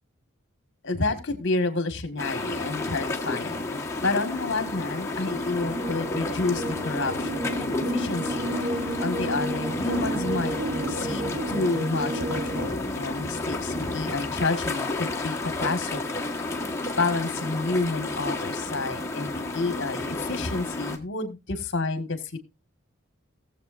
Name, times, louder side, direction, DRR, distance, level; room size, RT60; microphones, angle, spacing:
voice 1, 0.8-10.6 10.9-16.0 17.0-22.4, left 3 dB, 55° left, 9 dB, 1.7 m, -30 dB
sound 1, 2.2-21.0, left 2 dB, 15° left, 1.4 m, -31 dB
sound 2, 5.3-12.7, right 1 dB, 55° right, 1.1 m, -32 dB
18.5 x 7.6 x 2.6 m, 0.24 s
head